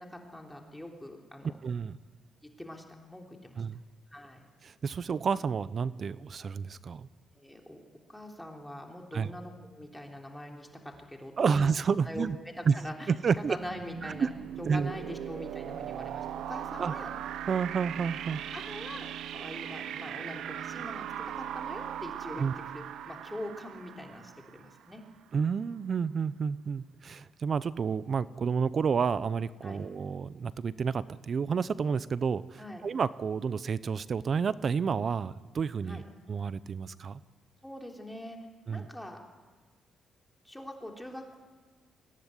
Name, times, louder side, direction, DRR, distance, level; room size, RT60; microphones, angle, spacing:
voice 1, 0.0-1.6 2.4-3.6 4.1-4.5 7.3-7.8 8.1-11.7 12.1-13.1 13.5-14.3 14.6-17.1 18.3-25.0 29.6-29.8 32.6-32.8 35.9-36.0 37.6-38.4 38.7-39.2 40.4-41.4, left 1 dB, 5° left, 1 dB, 3.4 m, -43 dB
voice 2, 1.6-2.0 3.6-3.8 4.6-7.1 9.1-9.3 11.4-12.4 12.7-12.8 13.1-13.6 14.0-14.3 14.7-14.9 16.8-16.9 17.5-18.4 22.4-22.5 25.3-36.0 36.3-37.2 38.7-38.9, right 6 dB, 45° right, 17 dB, 0.7 m, -30 dB
sound 1, 13.3-25.0, right 10 dB, 75° right, 0.9 m, -39 dB
23.0 x 17.5 x 9.8 m, 1.3 s
cardioid pair, 90°, 0 cm